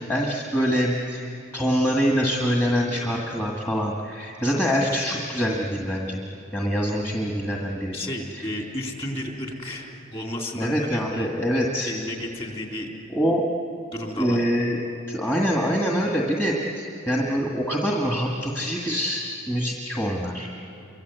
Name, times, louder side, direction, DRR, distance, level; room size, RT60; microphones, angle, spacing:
voice 1, 0.0-6.2 6.5-8.0 8.3-8.5 10.6-11.9 13.1-13.5 14.2-14.8 15.1-20.5, equal, 10° left, -2 dB, 1.8 m, -25 dB
voice 2, 7.9-11.3 11.8-12.9 13.9-14.4, left 1 dB, 30° left, 1 dB, 3.7 m, -32 dB
29.5 x 24.0 x 8.2 m, 2.9 s
head